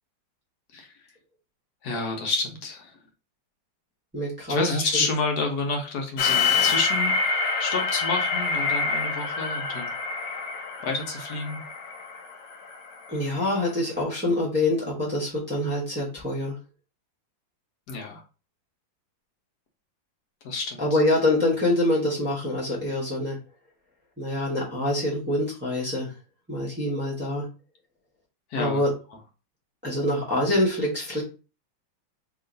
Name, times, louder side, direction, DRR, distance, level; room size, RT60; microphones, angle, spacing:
voice 1, 1.8-3.0 4.5-7.1 7.6-9.9 10.8-11.6 17.9-18.2 20.4-21.0 28.5-28.8, left 3 dB, 60° left, 2 dB, 1.2 m, -29 dB
voice 2, 4.1-5.1 13.1-16.6 20.8-23.4 24.2-26.1 26.5-27.5 28.6-28.9 29.8-31.2, left 1 dB, 10° right, -7 dB, 0.7 m, -25 dB
sound 1, 6.2-13.1, left 4 dB, 80° left, 1.4 m, -26 dB
3.0 x 2.9 x 3.8 m, 0.33 s
omnidirectional pair, 2.0 m